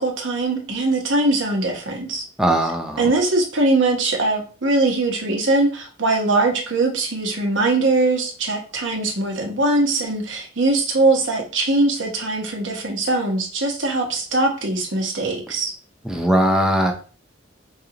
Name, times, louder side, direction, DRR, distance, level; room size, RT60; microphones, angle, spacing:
voice 1, 0.0-2.2 3.0-15.7, right 2 dB, 85° right, 1 dB, 1.0 m, -21 dB
voice 2, 2.4-3.0 16.1-16.9, right 1 dB, 5° right, 2 dB, 0.6 m, -19 dB
5.2 x 2.4 x 2.9 m, 0.37 s
head